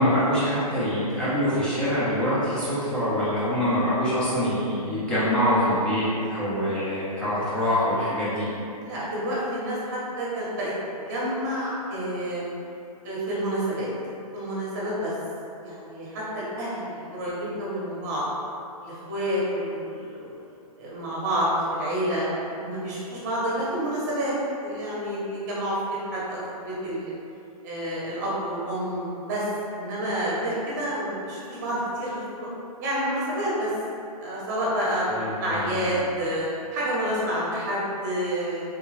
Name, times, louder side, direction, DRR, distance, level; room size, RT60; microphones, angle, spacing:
voice 1, 0.0-8.4 35.1-36.0, equal, 5° left, -11 dB, 0.4 m, -25 dB
voice 2, 8.8-10.7 11.1-12.4 13.0-13.9 14.3-15.1 15.6-18.2 18.8-20.3 20.8-22.3 22.5-24.3 24.6-25.8 26.1-27.1 27.6-29.4 29.7-32.5 32.8-33.7 34.2-35.0 35.4-38.6, equal, 30° right, -7 dB, 0.8 m, -29 dB
3.4 x 2.3 x 3.1 m, 2.6 s
hypercardioid pair, 165°, 20 cm